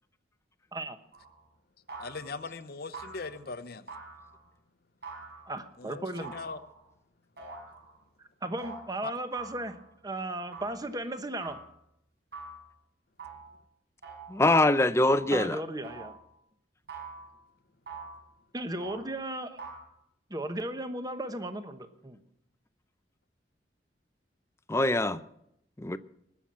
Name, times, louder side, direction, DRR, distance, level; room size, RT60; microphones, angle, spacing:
sound 1, 1.1-1.4 1.9-2.4 2.9-3.4 3.9-4.5 5.0-5.6 6.2-6.9 7.4-7.9 8.6-8.8 9.3-9.9 10.5-10.8 11.4-11.7 12.3-12.7 13.2-13.6 14.0-14.4 15.0-15.4 15.8-16.2 16.9-17.3 17.9-18.2 18.8-19.1 19.6-19.9, right 4 dB, 65° right, 6.7 m, -45 dB
voice 1, 2.0-3.9 5.8-6.0 6.3-6.6 9.0-9.1, left 4 dB, 60° left, 0.8 m, -39 dB
voice 2, 5.5-6.3 8.4-9.8 10.0-11.6 15.3-16.2 18.5-19.6 20.3-22.2, right 1 dB, 20° right, 1.0 m, -35 dB
voice 3, 14.3-15.6 24.7-25.2 25.8-26.0, left 2 dB, 15° left, 0.5 m, -23 dB
20.0 x 7.1 x 7.5 m
head